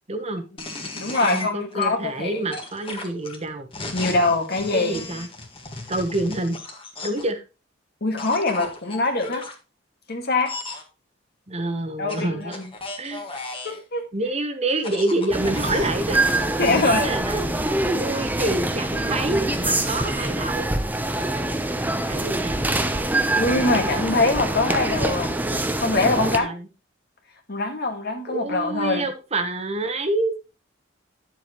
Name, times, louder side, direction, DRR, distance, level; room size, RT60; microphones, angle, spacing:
voice 1, 0.1-0.4 1.2-3.7 4.7-5.3 5.9-6.6 7.0-7.4 11.5-12.6 13.0-13.3 14.1-16.3 16.6-17.4 17.9-20.7 22.1-22.6 26.1-26.7 28.3-30.4, right 2 dB, 35° right, 7 dB, 1.1 m, -27 dB
sound 1, 0.6-1.9 2.5-7.3 8.2-9.5 10.4-10.8 12.1-13.8 14.7-16.9, left 3 dB, 30° left, 1.7 m, -35 dB
voice 2, 0.9-2.4 3.9-5.1 8.0-9.5 10.1-10.5 12.0-12.7 13.6-14.0 16.6-17.1 23.4-25.3 25.8-26.5 27.5-29.1, left 2 dB, 55° left, 4 dB, 1.9 m, -23 dB
sound 2, 15.3-26.4, right 1 dB, 10° right, 0.8 m, -25 dB
10.0 x 7.3 x 3.0 m, 0.30 s
head